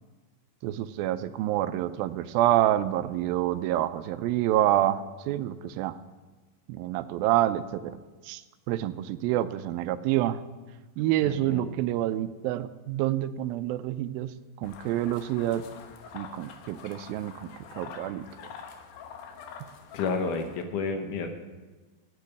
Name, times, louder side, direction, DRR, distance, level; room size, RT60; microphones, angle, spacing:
voice 1, 0.6-6.0 6.7-8.0 8.3-8.4 8.7-10.4 11.0-15.6 16.1-18.3, right 13 dB, 90° right, 12 dB, 2.4 m, -27 dB
voice 2, 11.2-11.7 19.9-21.3, left 4 dB, 70° left, 5 dB, 2.4 m, -31 dB
sound 1, 14.6-20.6, left 6 dB, 90° left, 2.9 m, -45 dB
8.8 x 8.4 x 9.4 m, 1.3 s
omnidirectional pair, 4.1 m